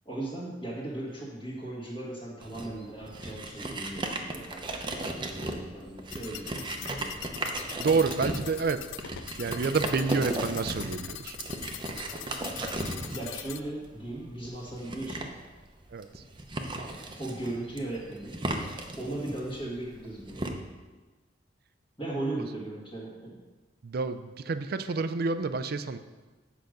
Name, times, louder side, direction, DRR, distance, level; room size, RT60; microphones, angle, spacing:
voice 1, 0.1-7.2 13.1-15.3 17.2-18.4 19.0-20.5 22.0-23.4, right 2 dB, 25° left, -9 dB, 1.7 m, -37 dB
rubbed wood on wood, 2.4-20.5, right 2 dB, 25° right, 0.8 m, -36 dB
sound 1, 6.1-13.6, left 11 dB, 85° left, 0.4 m, -42 dB
voice 2, 7.8-8.8 9.4-11.4 15.9-16.2 23.8-26.0, right 4 dB, 55° right, 11 dB, 0.4 m, -29 dB
8.2 x 5.1 x 6.4 m, 1.3 s
head